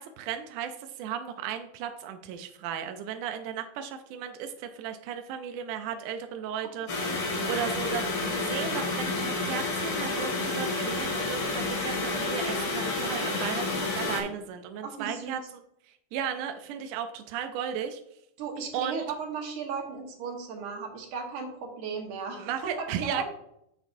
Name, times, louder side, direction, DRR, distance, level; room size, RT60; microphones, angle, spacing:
voice 1, 0.0-7.1 7.5-15.4 16.1-18.0 18.7-19.0 22.4-23.2, right 8 dB, 80° right, 7 dB, 1.8 m, -35 dB
voice 2, 6.6-7.3 14.8-15.4 18.4-23.2, right 5 dB, 65° right, 1 dB, 2.8 m, -36 dB
sound 1, 6.9-14.2, left 2 dB, 45° left, 2.8 m, -30 dB
9.8 x 7.1 x 2.6 m, 0.78 s
omnidirectional pair, 4.1 m